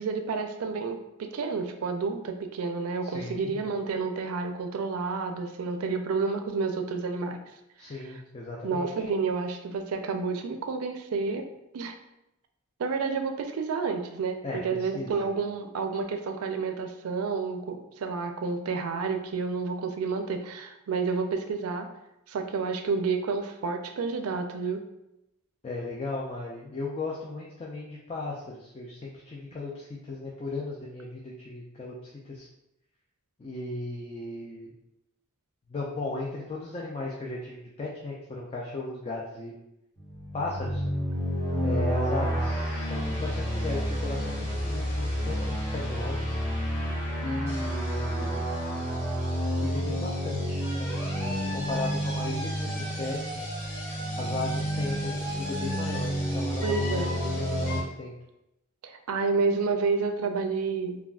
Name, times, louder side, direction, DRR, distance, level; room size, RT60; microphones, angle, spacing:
voice 1, 0.0-7.4 8.1-8.2 8.6-11.4 11.7-11.9 12.8-21.9 22.3-24.8 56.6-57.1 58.8-61.0, right 4 dB, 80° right, 6 dB, 0.4 m, -30 dB
voice 2, 3.0-3.6 7.8-9.1 14.4-15.3 25.6-32.5 33.4-34.7 35.7-39.5 40.3-40.8 41.6-46.4 47.2-48.4 49.6-53.5 54.2-58.1, left 2 dB, 30° left, -3 dB, 0.3 m, -36 dB
sound 1, 40.0-57.8, equal, 10° left, 1.2 m, -30 dB
3.4 x 2.3 x 2.3 m, 0.88 s
head